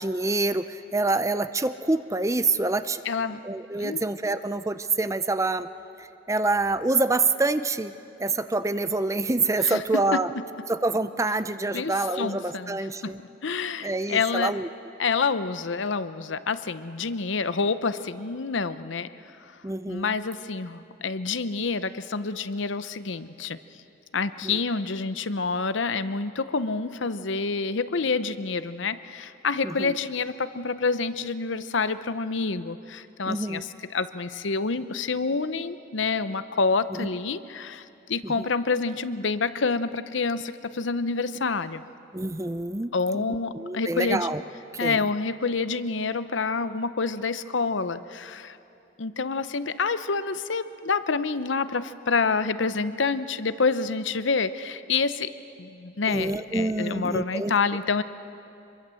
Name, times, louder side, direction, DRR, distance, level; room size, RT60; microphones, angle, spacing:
voice 1, 0.0-3.0 3.4-5.7 6.0-7.9 8.2-10.3 10.7-13.2 13.8-14.7 19.6-20.2 24.4-24.6 29.6-29.9 33.3-33.6 37.0-37.1 38.2-38.5 42.1-44.4 44.8-45.0 56.1-57.5, right 3 dB, 15° right, 12 dB, 0.5 m, -26 dB
voice 2, 3.0-3.4 3.8-4.0 9.6-10.4 11.7-14.5 15.0-19.1 19.9-23.6 24.1-41.8 42.9-44.3 44.8-48.6 49.0-55.3 55.6-58.0, left 4 dB, 75° left, 13 dB, 0.8 m, -28 dB
26.0 x 22.5 x 7.7 m, 2.8 s
head